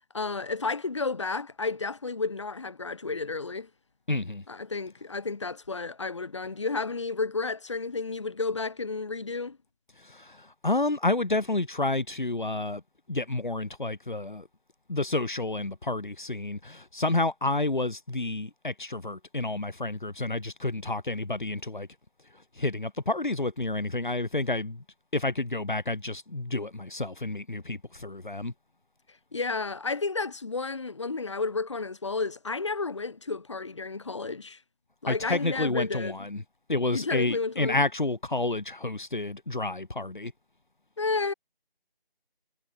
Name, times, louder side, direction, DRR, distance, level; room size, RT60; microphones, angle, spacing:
voice 1, 0.1-3.7 4.5-9.6 29.3-34.6 35.0-36.3 36.9-37.8 41.0-41.3, left 4 dB, 30° left, 5.2 m, -31 dB
voice 2, 4.1-4.4 10.0-12.8 13.1-14.5 14.9-21.9 22.5-24.8 25.1-28.5 35.1-36.4 36.7-40.3, left 2 dB, 55° left, 4.0 m, -30 dB
figure-of-eight pair, 170°, 29 cm